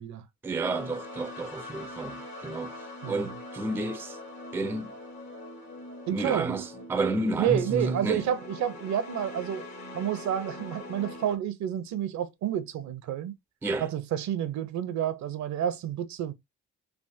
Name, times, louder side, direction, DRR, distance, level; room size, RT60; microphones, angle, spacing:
voice 1, 0.4-4.2 4.5-4.9 6.1-8.2 13.6-13.9, right 2 dB, 10° right, 0.4 m, -31 dB
sound 1, 0.6-11.4, left 2 dB, 65° left, 1.2 m, -42 dB
voice 2, 3.0-3.3 6.1-6.5 7.4-9.6 9.9-13.3 13.8-16.3, right 9 dB, 65° right, 0.6 m, -30 dB
3.4 x 2.1 x 2.6 m
cardioid pair, 90°, 30 cm